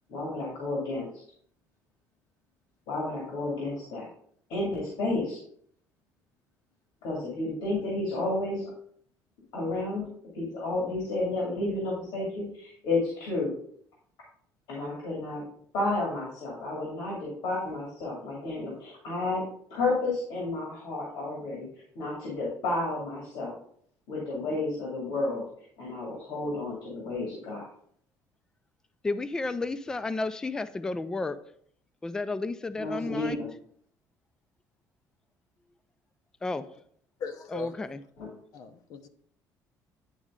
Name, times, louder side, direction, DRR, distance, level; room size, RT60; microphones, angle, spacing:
voice 1, 0.1-1.1 2.9-4.1 4.5-5.4 7.0-8.7 9.5-10.1 10.3-13.5 14.7-15.4 15.7-19.4 19.7-21.7 21.9-23.5 24.1-25.5 25.8-27.7 32.8-33.5 38.2-38.3, left 2 dB, 85° left, 2.4 m, -31 dB
voice 2, 29.0-31.4 32.0-33.4 36.4-36.6 37.5-38.0, left 3 dB, 10° left, 0.3 m, -32 dB
voice 3, 37.2-37.8 38.5-39.1, left 6 dB, 55° left, 0.8 m, -37 dB
9.9 x 4.1 x 3.7 m
cardioid pair, 170°, 7 cm